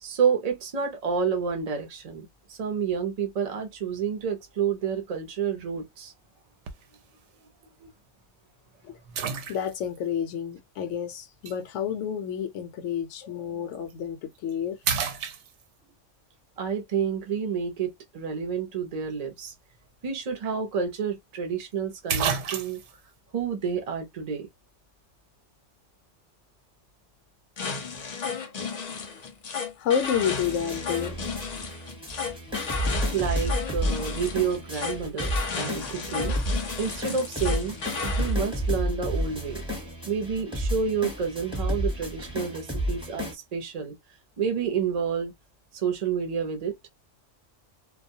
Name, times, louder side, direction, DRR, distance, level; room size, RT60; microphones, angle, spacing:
voice 1, 0.0-6.1 7.8-7.9 9.1-9.2 16.6-19.5 20.0-22.8 23.3-24.5 33.1-36.4 36.8-37.8 38.0-39.6 40.1-43.9 44.4-45.3 45.7-46.8, right 6 dB, 45° right, 0.6 m, -29 dB
sound 1, 6.7-7.0 7.6-7.7 9.2-10.0 11.5-11.6 13.7-13.9 14.4-14.5 14.8-15.9 20.0-20.1 20.4-20.5 21.6-21.7 22.1-23.0, right 7 dB, 75° right, 0.9 m, -30 dB
voice 2, 9.5-14.8 29.8-31.2, left 8 dB, 80° left, 0.9 m, -29 dB
sound 2, 27.6-38.4, left 5 dB, 50° left, 0.5 m, -34 dB
sound 3, 30.1-43.3, equal, 5° right, 0.8 m, -31 dB
2.3 x 2.1 x 2.6 m
omnidirectional pair, 1.3 m